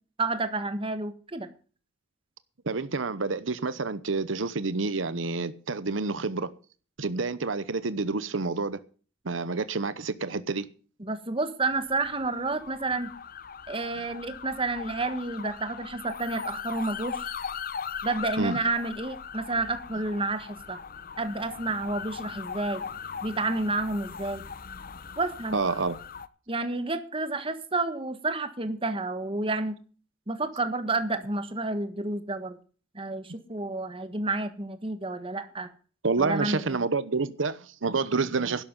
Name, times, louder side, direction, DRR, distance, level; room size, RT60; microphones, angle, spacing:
voice 1, 0.2-1.5 11.0-13.1 13.7-17.3 18.0-20.8 21.2-22.8 23.2-24.4 25.2-25.6 26.5-29.8 30.3-32.6 32.9-35.7 36.2-36.8, right 2 dB, 30° right, 1.5 m, -30 dB
voice 2, 2.7-6.5 7.0-8.8 9.2-10.7 18.4-18.6 25.5-26.0 36.0-38.6, right 4 dB, 85° right, 0.9 m, -28 dB
sound 1, 11.7-26.3, left 7 dB, 50° left, 0.8 m, -39 dB
12.0 x 11.0 x 5.4 m
head